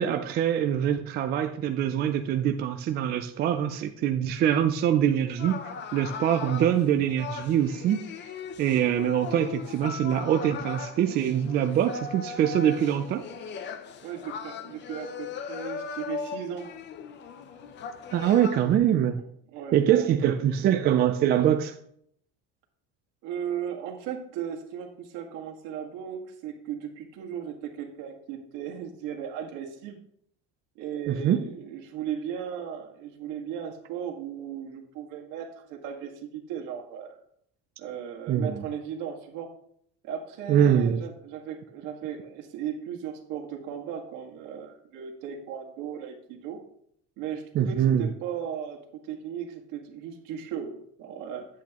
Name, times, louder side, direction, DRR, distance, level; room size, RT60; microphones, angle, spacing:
voice 1, 0.0-5.6 5.9-8.0 8.6-13.2 18.1-19.2 19.7-21.7 31.1-31.4 38.3-38.6 40.5-41.0 47.6-48.1, right 10 dB, 30° right, 6 dB, 0.4 m, -24 dB
sound 1, 5.4-18.8, left 5 dB, 35° left, 0.6 m, -38 dB
voice 2, 14.0-16.7 19.5-20.3 23.2-30.0 30.8-37.2 37.8-39.5 40.0-46.6 47.2-51.5, right 8 dB, 70° right, 1 dB, 1.8 m, -36 dB
10.5 x 8.3 x 2.9 m, 0.70 s
cardioid pair, 175°, 32 cm